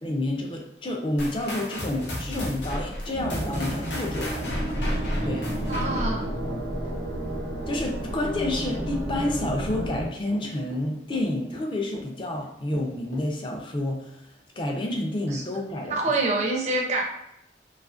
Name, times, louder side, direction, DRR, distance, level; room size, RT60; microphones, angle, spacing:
voice 1, 0.0-4.8 5.2-5.5 7.7-16.2, left 1 dB, 25° left, 1 dB, 0.4 m, -29 dB
sound 1, 1.2-6.3, equal, 75° left, 0.6 m, -33 dB
Run / Walk footsteps, 2.0-13.7, equal, 45° left, 0.9 m, -42 dB
sound 2, 3.1-10.1, right 1 dB, 80° right, 0.7 m, -31 dB
voice 2, 5.7-6.3 15.3-15.4 15.9-17.0, right 2 dB, 40° right, 0 dB, 0.4 m, -26 dB
2.5 x 2.4 x 2.4 m, 0.81 s
head